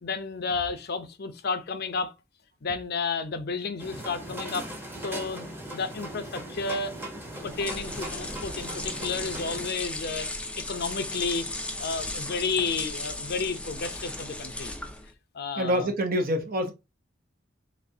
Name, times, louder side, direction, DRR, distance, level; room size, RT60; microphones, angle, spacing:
voice 1, 0.0-2.1 2.6-4.7 5.0-5.5 5.7-6.9 7.4-10.3 10.6-11.5 11.8-14.7 15.3-15.9, left 4 dB, 55° left, 0.6 m, -31 dB
sound 1, 3.8-9.7, right 1 dB, 10° right, 0.9 m, -39 dB
sound 2, 7.3-15.1, left 2 dB, 5° left, 0.5 m, -36 dB
voice 2, 15.6-16.7, equal, 45° right, 0.7 m, -26 dB
4.1 x 3.2 x 2.7 m
head